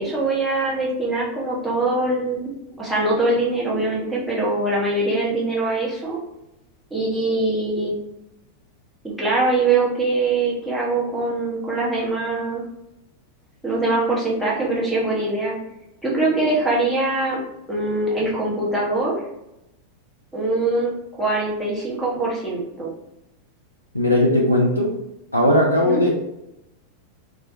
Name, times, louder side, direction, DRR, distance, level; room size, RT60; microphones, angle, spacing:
voice 1, 0.0-2.5 2.8-6.2 6.9-8.0 9.0-12.6 13.6-15.6 16.0-17.4 17.7-19.1 20.3-22.9 25.9-26.1, right 2 dB, ahead, -7 dB, 0.9 m, -23 dB
voice 2, 23.9-24.9 25.3-26.1, left 1 dB, 90° left, -3 dB, 0.3 m, -18 dB
2.3 x 2.2 x 2.7 m, 0.87 s
figure-of-eight pair, 90°, 0 cm